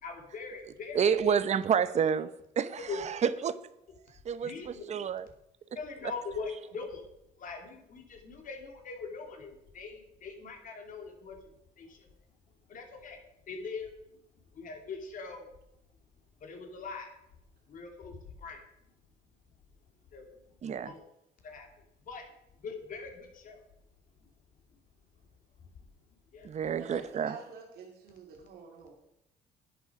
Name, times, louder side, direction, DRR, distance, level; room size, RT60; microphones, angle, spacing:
voice 1, 0.0-1.4 2.9-3.0 4.4-4.8 5.8-7.0 7.4-12.1 12.7-14.2 14.5-15.5 16.4-17.1 17.7-18.9 20.1-20.3 20.8-21.0 21.4-22.3 22.6-23.6 24.2-24.3 24.7-24.8 25.6-25.7 26.1-26.5, left 4 dB, 50° left, 3 dB, 2.6 m, -42 dB
voice 2, 0.9-2.3 2.6-3.6 4.2-5.3 20.6-20.9 26.4-27.4, right 7 dB, 40° right, 14 dB, 0.8 m, -29 dB
voice 3, 26.8-28.9, right 5 dB, 70° right, 1 dB, 2.3 m, -48 dB
10.5 x 9.1 x 4.9 m, 0.83 s
cardioid pair, 110°, 17 cm